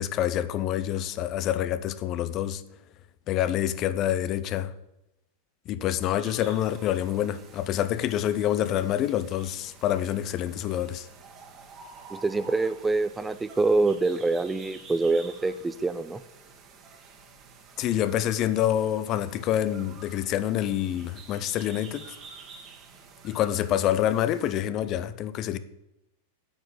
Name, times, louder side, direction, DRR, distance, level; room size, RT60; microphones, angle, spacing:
voice 1, 0.0-2.6 3.3-4.7 5.7-11.1 17.8-22.1 23.2-25.6, left 11 dB, 35° left, 0.8 m, -27 dB
sound 1, 6.2-24.6, right 4 dB, 30° right, 1.9 m, -49 dB
voice 2, 12.1-16.2, right 3 dB, 10° right, 0.5 m, -25 dB
8.9 x 7.9 x 8.5 m
figure-of-eight pair, 90°, 0 cm